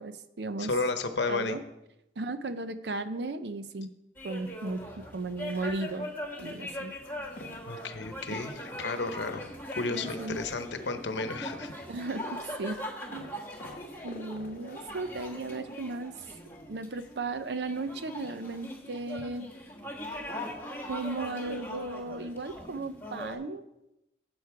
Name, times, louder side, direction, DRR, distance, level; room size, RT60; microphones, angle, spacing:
voice 1, 0.0-0.7 1.3-1.6 2.2-3.9 4.2-6.1 6.4-6.9 9.9-10.4 11.9-12.8 13.1-13.3 14.0-16.1 16.7-19.5 20.9-23.7, right 3 dB, 75° right, 11 dB, 0.6 m, -35 dB
voice 2, 0.6-1.6 7.6-8.5 8.8-9.4 9.7-11.7, left 3 dB, 85° left, 9 dB, 0.9 m, -32 dB
sound 1, 4.2-23.4, left 1 dB, 10° left, 1.4 m, -41 dB
sound 2, 7.4-15.0, left 2 dB, 50° left, 0.6 m, -49 dB
8.3 x 8.0 x 4.7 m, 0.90 s
head